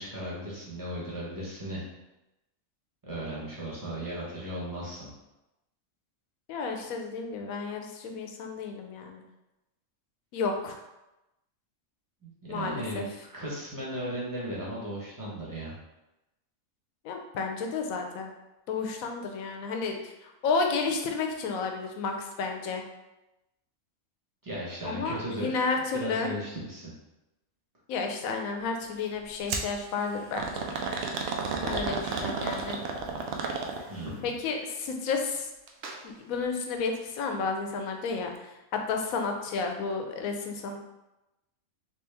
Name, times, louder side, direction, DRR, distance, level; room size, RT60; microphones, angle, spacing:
voice 1, 0.0-1.8 3.0-5.1 12.2-13.0 13.3-15.7 24.4-25.6 25.9-26.9 33.9-34.3, right 1 dB, 15° right, -6 dB, 1.0 m, -36 dB
voice 2, 6.5-9.2 10.3-10.7 12.5-13.0 17.0-18.3 18.7-22.8 24.8-26.3 27.9-30.4 31.6-32.8 34.2-35.5 36.0-40.8, left 4 dB, 80° left, 4 dB, 1.0 m, -31 dB
sound 1, 29.5-29.7 30.4-34.1 35.7-36.0 36.3-36.4 37.3-37.4, right 4 dB, 65° right, 0.6 m, -32 dB
3.1 x 3.0 x 3.4 m, 0.96 s
omnidirectional pair, 1.4 m